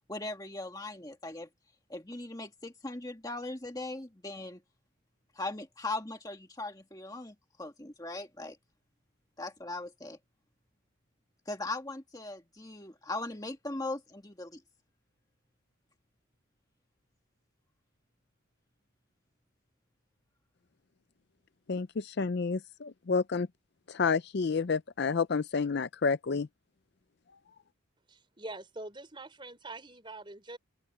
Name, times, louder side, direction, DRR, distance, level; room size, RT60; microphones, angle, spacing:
voice 1, 0.1-1.5 1.9-4.6 5.3-8.6 9.4-10.2 11.4-14.6, left 2 dB, 15° left, 1.7 m, -39 dB
voice 2, 21.7-23.5 23.9-26.5, left 5 dB, 50° left, 0.5 m, -30 dB
voice 3, 28.1-30.6, right 2 dB, 25° right, 4.4 m, -44 dB
head